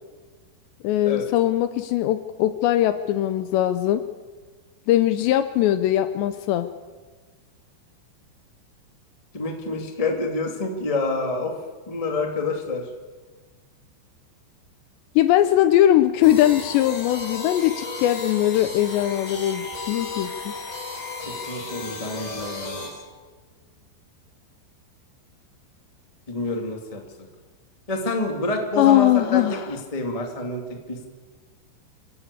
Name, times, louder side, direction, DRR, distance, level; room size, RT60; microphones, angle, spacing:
voice 1, 0.8-4.0 4.9-6.7 15.2-20.5 28.8-29.7, left 13 dB, 80° left, 10 dB, 2.6 m, -20 dB
voice 2, 9.3-11.5 11.9-12.9 21.2-22.9 26.3-27.0 27.9-31.0, left 2 dB, 40° left, 2 dB, 0.5 m, -28 dB
sound 1, 16.2-22.9, left 3 dB, 55° left, 5.7 m, -34 dB
30.0 x 12.0 x 8.3 m, 1.4 s
omnidirectional pair, 5.6 m